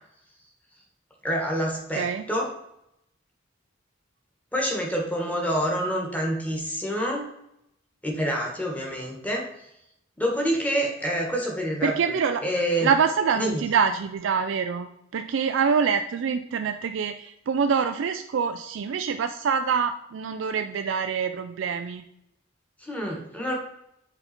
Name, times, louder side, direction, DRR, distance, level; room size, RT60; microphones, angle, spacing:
voice 1, 1.2-2.5 4.5-7.3 8.0-9.5 10.2-12.9 13.4-13.6 22.8-23.6, equal, 10° left, 0 dB, 1.5 m, -27 dB
voice 2, 11.8-12.4 12.8-22.0, right 6 dB, 70° right, 7 dB, 0.4 m, -25 dB
7.9 x 4.0 x 4.3 m, 0.80 s
head